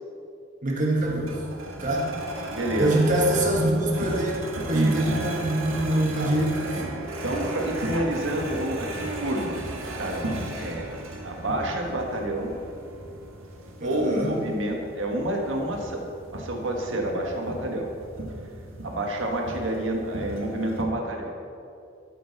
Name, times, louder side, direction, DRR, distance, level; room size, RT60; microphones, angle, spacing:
voice 1, 0.6-1.4 1.8-2.1 2.8-4.4 4.7-6.6 13.8-14.3, right 1 dB, 40° right, -2 dB, 1.3 m, -24 dB
sound 1, 1.0-20.8, right 2 dB, 85° right, 1.4 m, -35 dB
voice 2, 2.5-3.0 4.7-4.9 6.2-6.3 7.2-8.9 9.2-10.9 11.2-12.6 13.8-17.9 18.8-21.4, right 1 dB, 70° right, 1 dB, 1.6 m, -29 dB
12.5 x 8.5 x 4.1 m, 2.4 s
head